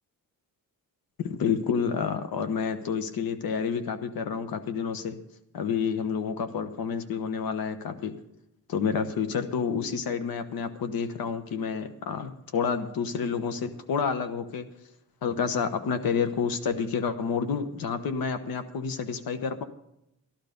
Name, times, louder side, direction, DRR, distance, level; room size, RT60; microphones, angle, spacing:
voice 1, 1.2-5.2 5.5-8.1 8.7-14.7 15.2-19.6, left 6 dB, 80° left, 10 dB, 1.1 m, -29 dB
13.5 x 11.5 x 5.2 m, 0.80 s
wide cardioid pair, 165°, 35 cm